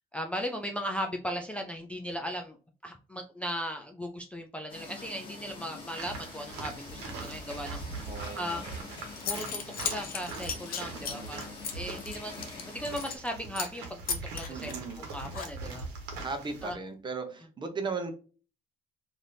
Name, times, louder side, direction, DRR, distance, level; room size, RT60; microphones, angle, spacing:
voice 1, 0.1-2.6 2.8-7.8 8.4-8.6 9.3-15.9 16.6-16.8, equal, 5° left, 2 dB, 0.4 m, -37 dB
sound 1, 4.7-13.2, left 3 dB, 30° left, 1.1 m, -45 dB
sound 2, 5.9-16.7, right 3 dB, 90° right, 1.0 m, -42 dB
voice 2, 8.0-8.9 10.8-11.6 14.5-15.0 16.2-18.1, right 4 dB, 30° right, 6 dB, 0.7 m, -38 dB
Zipper (clothing) / Coin (dropping), 8.8-8.9 9.2-13.3 13.5-13.8 14.1-15.8, left 7 dB, 60° left, 0.7 m, -36 dB
3.3 x 2.6 x 2.6 m, 0.36 s
cardioid pair, 110°, 17 cm